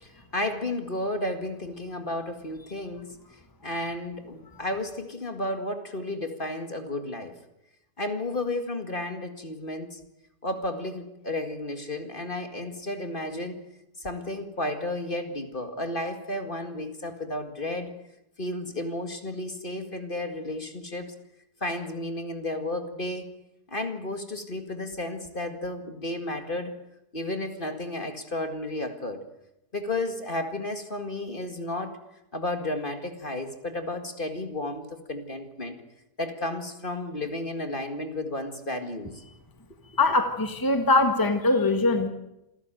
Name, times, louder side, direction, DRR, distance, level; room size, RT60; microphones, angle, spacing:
voice 1, 0.0-3.2 3.6-7.3 8.0-10.0 10.4-13.6 14.0-17.9 18.4-21.1 21.6-23.3 23.7-26.7 27.1-29.2 29.7-32.0 32.3-35.8 36.2-39.1, left 1 dB, 35° left, 6 dB, 2.2 m, -32 dB
voice 2, 39.9-42.1, left 2 dB, 15° left, 6 dB, 1.7 m, -22 dB
27.5 x 13.5 x 9.1 m, 0.87 s
omnidirectional pair, 1.7 m